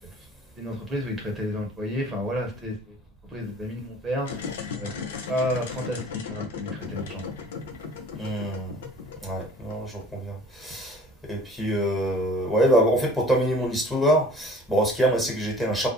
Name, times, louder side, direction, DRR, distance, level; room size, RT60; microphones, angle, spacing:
voice 1, 0.6-3.0 3.3-4.4 4.8-4.9 5.3-7.2 8.3-8.4, equal, 20° right, 0.8 m, -31 dB
sound 1, 4.2-10.0, left 6 dB, 65° left, 0.4 m, -37 dB
voice 2, 8.2-8.7 9.2-11.0 11.3-15.9, right 1 dB, 5° left, 1.0 m, -24 dB
2.3 x 2.0 x 2.7 m
hypercardioid pair, 90°, 0 cm